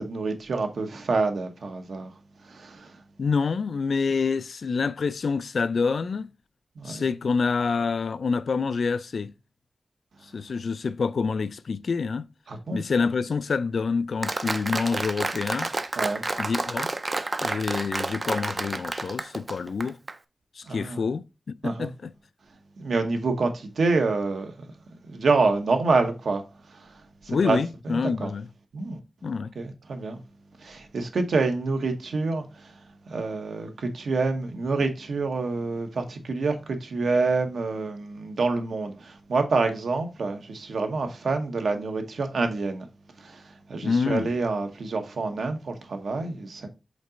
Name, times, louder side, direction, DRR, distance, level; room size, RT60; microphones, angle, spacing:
voice 1, 0.0-2.1 2.4-3.0 6.8-7.1 12.5-12.8 16.0-16.2 20.7-21.1 21.6-21.9 22.8-24.7 25.1-26.4 26.7-26.9 27.2-27.6 27.8-28.3 28.7-29.0 29.5-30.2 30.6-32.7 33.1-42.9 43.2-46.7, right 3 dB, 70° right, 1.0 m, -27 dB
voice 2, 3.2-6.3 6.9-9.3 10.3-12.3 12.7-15.7 16.4-16.9 17.4-20.0 20.6-21.2 21.6-22.1 27.3-28.5 29.2-29.5 43.8-44.3, left 5 dB, 60° left, 0.3 m, -27 dB
Applause, 14.2-20.1, right 2 dB, 30° right, 0.4 m, -30 dB
5.2 x 3.9 x 5.0 m
wide cardioid pair, 175°, 0 cm